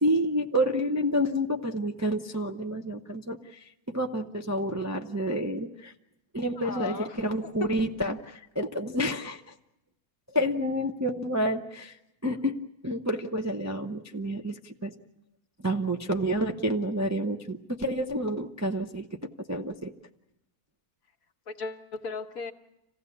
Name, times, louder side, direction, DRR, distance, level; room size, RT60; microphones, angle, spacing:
voice 1, 0.0-5.9 6.3-9.4 10.3-12.0 12.2-12.6 12.8-14.9 15.6-19.1 19.5-19.9, equal, 20° right, 3 dB, 0.4 m, -29 dB
voice 2, 6.6-7.2 7.6-7.7 21.5-22.5, left 3 dB, 60° left, 4 dB, 1.6 m, -35 dB
26.5 x 16.0 x 8.4 m, 0.89 s
omnidirectional pair, 1.7 m